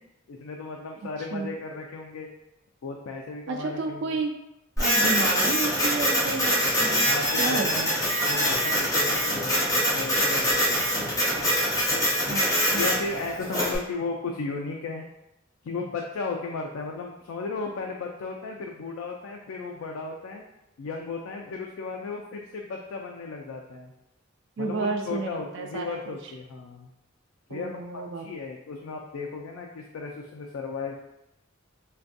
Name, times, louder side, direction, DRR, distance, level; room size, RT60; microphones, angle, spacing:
voice 1, 0.3-2.3 2.8-4.2 7.1-7.8 8.3-11.1 11.9-12.4 12.7-15.1 15.6-20.4 20.8-23.9 24.6-26.9 27.5-31.0, left 4 dB, 90° left, 1 dB, 0.3 m, -35 dB
voice 2, 3.5-4.3 4.8-7.1 7.4-7.9 12.3-13.0 24.6-26.2 27.5-28.4, right 3 dB, 60° right, 3 dB, 0.3 m, -31 dB
Printer, 4.8-13.8, equal, 15° left, 0.8 m, -24 dB
3.3 x 2.2 x 2.6 m, 0.88 s
head